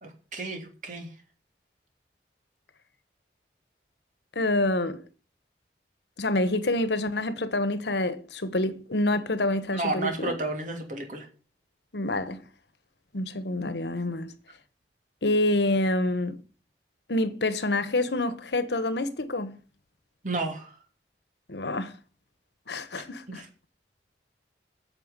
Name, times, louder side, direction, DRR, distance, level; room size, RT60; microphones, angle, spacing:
voice 1, 0.0-1.1 9.7-11.3 20.2-20.8 23.4-23.5, right 2 dB, 45° right, 2.8 m, -32 dB
voice 2, 4.3-5.0 6.2-10.3 11.9-12.4 13.1-14.3 15.2-16.4 17.1-19.6 21.5-21.9 22.7-23.4, left 2 dB, 80° left, 1.2 m, -27 dB
9.3 x 6.9 x 8.1 m
head